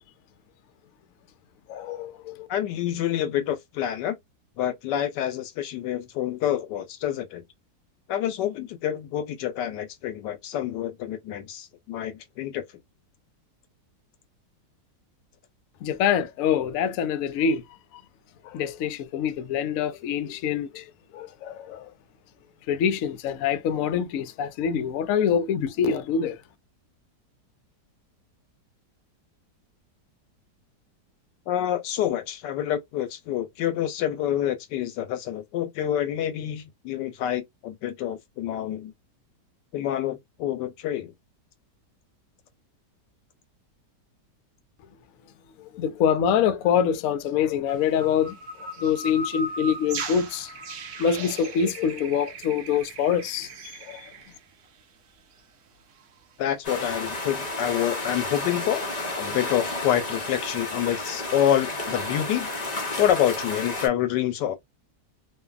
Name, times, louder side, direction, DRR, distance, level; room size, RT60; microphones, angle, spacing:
voice 1, 1.7-2.5 15.8-17.6 18.4-21.9 22.7-26.4 45.6-48.3 48.8-50.5 51.0-53.5 53.9-54.1, left 8 dB, 70° left, 0.8 m, -25 dB
voice 2, 2.5-4.2 4.6-7.4 8.1-12.6 31.5-38.9 39.7-41.1 56.4-58.8 59.2-62.5 63.0-64.5, left 11 dB, 90° left, 1.2 m, -27 dB
sound 1, 47.7-54.8 55.2-55.4 55.9-56.3 57.5-57.7, right 2 dB, 60° right, 0.8 m, -38 dB
sound 2, 56.6-63.9, left 2 dB, 45° left, 0.5 m, -31 dB
2.6 x 2.5 x 2.3 m
omnidirectional pair, 1.8 m